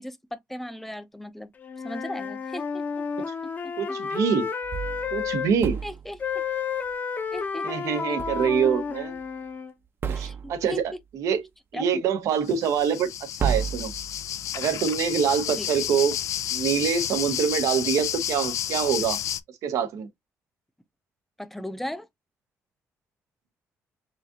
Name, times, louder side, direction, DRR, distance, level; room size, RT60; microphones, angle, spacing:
voice 1, 0.0-1.5 1.8-3.3 3.6-4.0 5.8-6.4 7.3-8.4 10.1-10.8 11.7-12.0 15.6-15.7 21.4-22.1, left 1 dB, 5° left, 0.6 m, -37 dB
Wind instrument woodwind instrument, 1.6-5.5 6.2-9.7, left 6 dB, 35° left, 0.8 m, -31 dB
voice 2, 3.8-4.5 5.1-5.8 7.6-9.1 10.1-10.8 11.1-11.4 11.7-13.1 13.4-13.9 14.5-16.2 16.5-19.2 19.6-20.1, right 7 dB, 80° right, 1.0 m, -25 dB
sound 1, 4.6-6.2 8.2-8.9 9.2-9.3 10.0-10.8 12.7-12.8 13.4-14.6, right 7 dB, 45° right, 0.8 m, -32 dB
sound 2, 12.5-19.4, left 11 dB, 75° left, 0.4 m, -31 dB
4.9 x 2.5 x 2.8 m
cardioid pair, 110°, 5 cm